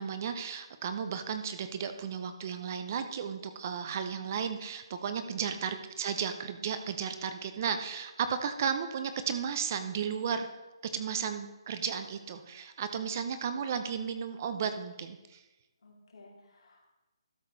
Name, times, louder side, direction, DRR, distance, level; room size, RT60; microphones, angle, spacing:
voice 1, 0.0-10.5 10.8-15.4, right 7 dB, 30° right, 9 dB, 0.6 m, -34 dB
voice 2, 15.8-16.9, left 2 dB, 70° left, -1 dB, 2.7 m, -55 dB
12.5 x 6.6 x 4.0 m, 1.0 s
hypercardioid pair, 165°, 3 cm